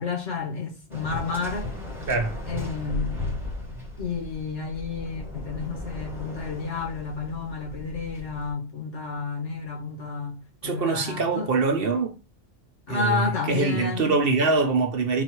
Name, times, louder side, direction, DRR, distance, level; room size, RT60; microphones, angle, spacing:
voice 1, 0.0-1.7 2.5-3.3 4.0-11.5 12.9-14.2, left 4 dB, 85° left, 1.8 m, -31 dB
Waves surf, 0.9-8.5, left 2 dB, ahead, 1.2 m, -36 dB
voice 2, 10.6-12.2 12.9-15.2, right 4 dB, 60° right, 0.9 m, -24 dB
3.9 x 2.6 x 4.4 m
omnidirectional pair, 1.2 m